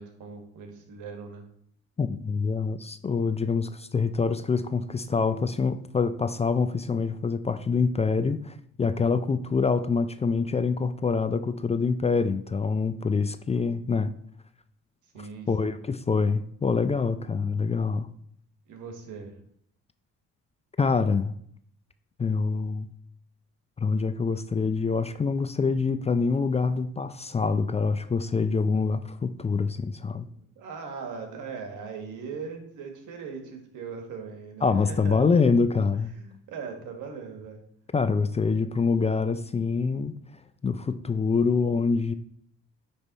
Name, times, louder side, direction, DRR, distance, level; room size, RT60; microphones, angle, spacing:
voice 1, 0.0-1.4 15.1-15.8 18.7-19.3 30.4-35.3 36.1-37.6 38.5-38.6, right 5 dB, 85° right, 4 dB, 1.5 m, -40 dB
voice 2, 2.0-14.1 15.5-18.1 20.8-21.4 22.2-22.9 23.8-30.3 34.6-36.1 37.9-40.1 40.6-42.1, left 4 dB, 20° left, 11 dB, 0.3 m, -25 dB
9.8 x 3.4 x 4.0 m, 0.67 s
cardioid pair, 90°, 30 cm